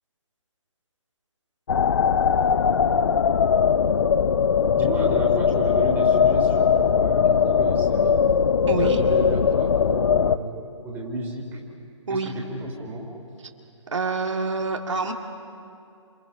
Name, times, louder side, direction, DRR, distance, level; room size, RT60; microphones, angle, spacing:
sound 1, 1.7-10.4, left 6 dB, 50° left, 0.6 m, -20 dB
voice 1, 4.7-8.3 8.8-11.6 12.1-13.1, right 1 dB, 10° right, -1 dB, 3.1 m, -32 dB
voice 2, 8.7-9.0 12.1-12.3 13.9-15.1, right 4 dB, 65° right, 2 dB, 2.1 m, -26 dB
28.0 x 28.0 x 5.4 m, 2.5 s
figure-of-eight pair, 145°, 16 cm